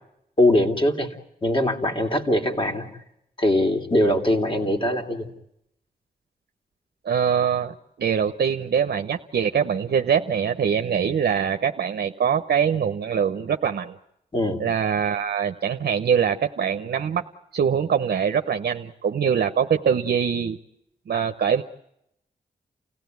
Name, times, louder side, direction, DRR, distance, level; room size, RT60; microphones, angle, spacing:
voice 1, 0.4-1.1 1.4-2.9 3.4-5.3 14.3-14.6, left 1 dB, 30° left, 4 dB, 3.4 m, -21 dB
voice 2, 7.0-13.9 14.6-17.2 17.5-20.6 21.1-21.6, right 7 dB, 80° right, 6 dB, 0.9 m, -23 dB
29.0 x 17.0 x 9.4 m, 0.81 s
cardioid pair, 65°, 16 cm